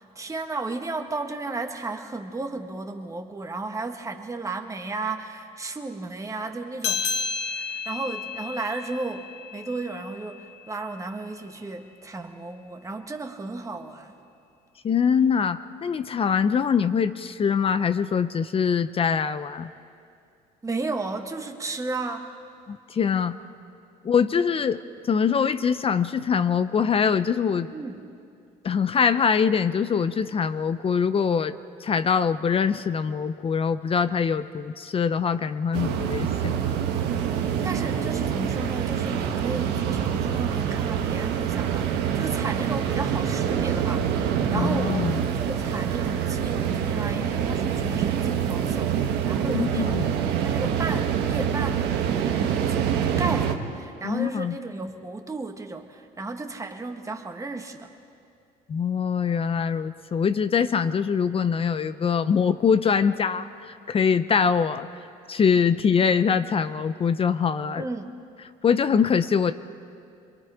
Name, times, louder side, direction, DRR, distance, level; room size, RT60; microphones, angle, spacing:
voice 1, 0.0-7.1 7.4-14.1 20.6-22.3 27.7-28.1 37.4-49.9 50.4-57.9 67.8-68.1, right 3 dB, 20° right, 4 dB, 1.6 m, -34 dB
sound 1, 6.8-11.7, left 6 dB, 75° left, 1.6 m, -33 dB
voice 2, 14.8-19.7 22.7-23.4 24.0-27.7 28.6-36.6 44.5-45.2 49.5-50.1 54.0-54.6 58.7-64.9 65.3-67.8 68.6-69.5, left 6 dB, 35° left, 12 dB, 0.6 m, -23 dB
sound 2, 35.7-53.5, right 8 dB, 85° right, 1.4 m, -26 dB
26.5 x 22.5 x 5.0 m, 2.4 s
cardioid pair, 110°, 17 cm